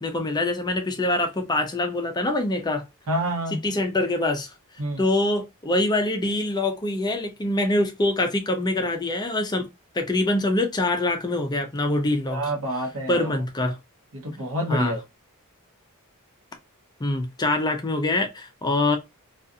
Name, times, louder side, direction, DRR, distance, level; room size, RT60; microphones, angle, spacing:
voice 1, 0.0-2.8 3.6-4.5 5.0-9.7 9.9-12.5 13.1-13.8 14.7-14.9 17.0-19.0, left 2 dB, 20° left, 0.4 m, -24 dB
voice 2, 3.1-3.6 4.8-5.0 12.3-13.3 14.1-15.0, right 1 dB, 65° right, 0.9 m, -27 dB
2.4 x 2.4 x 2.5 m
head